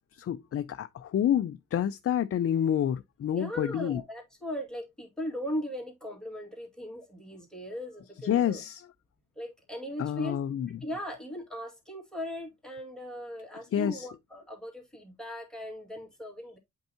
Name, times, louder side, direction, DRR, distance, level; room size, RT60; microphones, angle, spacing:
voice 1, 0.1-4.0 8.2-8.9 10.0-10.8 13.7-14.1, left 10 dB, 50° left, 0.5 m, -28 dB
voice 2, 3.3-8.6 9.4-10.4 10.8-16.6, equal, ahead, 2.2 m, -38 dB
8.1 x 4.6 x 2.8 m
wide cardioid pair, 150°, 31 cm